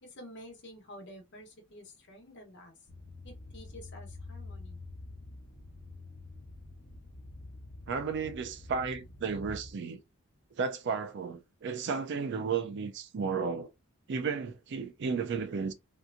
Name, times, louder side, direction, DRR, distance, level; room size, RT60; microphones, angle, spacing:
voice 1, 0.0-2.7 3.2-4.8, equal, 55° left, 1.0 m, -50 dB
sound 1, 2.9-9.7, left 2 dB, 25° left, 1.1 m, -47 dB
voice 2, 7.9-10.0 10.6-13.7 14.1-15.7, right 5 dB, 55° right, 0.4 m, -33 dB
3.3 x 2.8 x 2.5 m
head